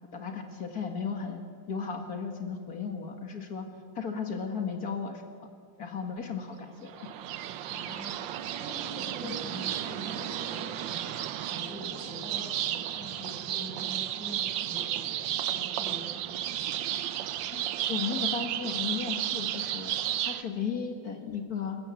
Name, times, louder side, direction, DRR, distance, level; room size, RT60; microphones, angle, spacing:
voice 1, 0.1-3.7 4.0-5.5 5.8-7.1 9.2-9.4 17.5-21.8, left 6 dB, 55° left, 4 dB, 2.1 m, -35 dB
sound 1, 6.9-20.4, right 11 dB, 80° right, 1.5 m, -33 dB
voice 2, 7.6-16.3, equal, 50° right, -2 dB, 7.1 m, -44 dB
29.0 x 13.0 x 8.4 m, 2.2 s
omnidirectional pair, 2.1 m